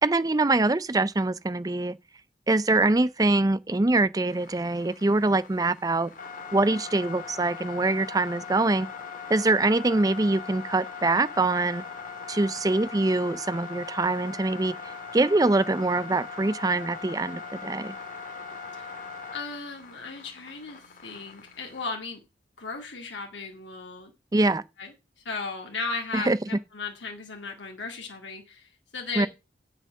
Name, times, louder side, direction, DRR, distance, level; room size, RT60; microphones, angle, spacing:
voice 1, 0.0-2.0 2.5-6.1 6.5-8.9 9.3-11.8 12.3-14.7 15.1-18.0 24.3-24.6 26.1-26.4 29.2-29.3, right 2 dB, 20° right, 0.5 m, -24 dB
sound 1, 4.3-21.9, left 5 dB, 45° left, 2.0 m, -40 dB
voice 2, 19.3-22.2 22.6-24.1 24.8-24.9 25.3-26.3 26.7-29.3, left 4 dB, 85° left, 2.0 m, -36 dB
8.0 x 7.2 x 6.2 m
head